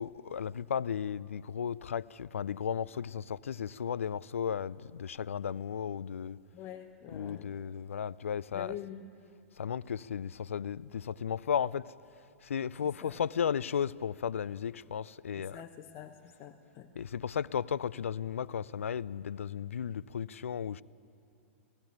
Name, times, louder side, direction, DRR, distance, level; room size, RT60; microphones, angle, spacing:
voice 1, 0.0-6.4 7.1-8.7 9.6-11.9 12.4-15.6 17.0-20.8, left 8 dB, 75° left, 0.4 m, -35 dB
voice 2, 6.5-7.5 8.5-9.1 13.0-13.2 15.4-16.9, left 10 dB, 35° left, 0.9 m, -45 dB
17.5 x 16.0 x 9.3 m
figure-of-eight pair, 105°, 7 cm